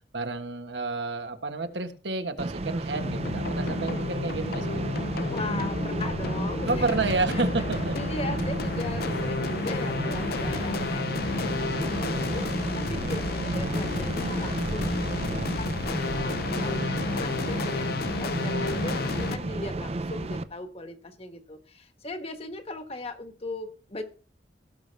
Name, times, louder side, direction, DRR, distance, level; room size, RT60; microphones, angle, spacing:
voice 1, 0.1-4.8 6.6-8.0, right 3 dB, 85° right, 7 dB, 1.4 m, -30 dB
sound 1, 2.4-20.4, right 2 dB, 35° right, 0.6 m, -32 dB
sound 2, 2.9-19.4, left 4 dB, 60° left, 0.5 m, -32 dB
voice 2, 5.3-7.7 7.9-24.0, left 2 dB, 35° left, 7 dB, 1.3 m, -39 dB
17.0 x 6.8 x 3.4 m, 0.38 s
head